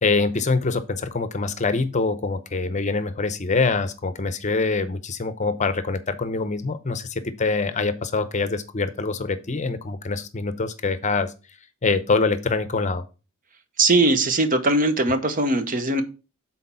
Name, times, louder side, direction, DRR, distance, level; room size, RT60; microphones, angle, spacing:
voice 1, 0.0-11.3 11.8-13.0, left 4 dB, 35° left, 11 dB, 0.7 m, -24 dB
voice 2, 13.8-16.0, right 2 dB, 40° right, 9 dB, 0.9 m, -20 dB
6.4 x 4.2 x 5.6 m, 0.32 s
head